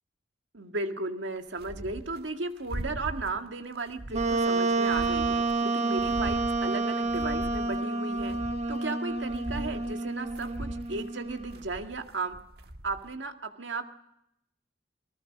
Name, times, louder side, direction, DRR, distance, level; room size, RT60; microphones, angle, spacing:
voice 1, 0.5-8.4 8.7-12.4 12.8-13.9, right 3 dB, 85° right, 6 dB, 2.0 m, -35 dB
sound 1, 1.4-2.2 2.6-3.4 3.8-5.6 5.9-7.9 8.1-13.1, right 1 dB, 60° right, 1.6 m, -40 dB
Wind instrument woodwind instrument, 4.1-11.6, right 3 dB, 40° right, 1.3 m, -29 dB
29.0 x 19.0 x 5.3 m, 0.80 s
head